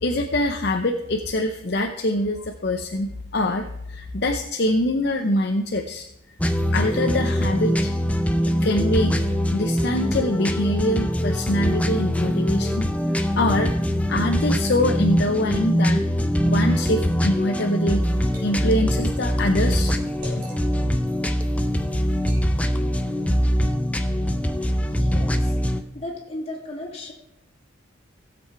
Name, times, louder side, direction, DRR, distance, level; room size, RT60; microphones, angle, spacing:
voice 1, 0.0-6.1 6.7-8.0 8.6-9.2 9.5-12.9 13.4-13.7 14.1-16.1 16.4-18.1 18.4-19.9 20.3-20.4, left 1 dB, 55° left, 4 dB, 0.7 m, -24 dB
sound 1, 6.4-25.8, equal, 5° left, 0.6 m, -23 dB
Liquid, 17.8-18.4 18.8-20.9 21.4-21.6 22.1-22.5, equal, 45° right, 5.0 m, -44 dB
voice 2, 24.8-25.6 25.9-27.1, left 1 dB, 30° left, -2 dB, 2.9 m, -35 dB
16.0 x 7.8 x 4.6 m, 0.82 s
head